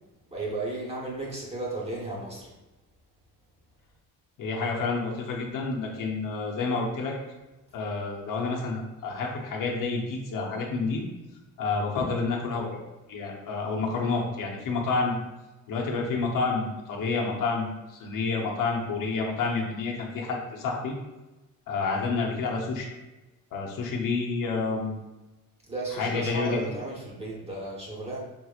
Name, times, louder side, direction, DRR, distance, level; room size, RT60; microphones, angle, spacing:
voice 1, 0.3-2.5 25.7-28.2, right 2 dB, 20° right, -4 dB, 1.0 m, -34 dB
voice 2, 4.4-7.1 7.7-11.0 11.6-12.8 13.1-15.2 15.7-21.0 21.7-22.9 23.5-24.9 25.9-26.6, left 4 dB, 65° left, -1 dB, 0.8 m, -29 dB
5.3 x 2.9 x 2.4 m, 1.1 s
cardioid pair, 135°, 35 cm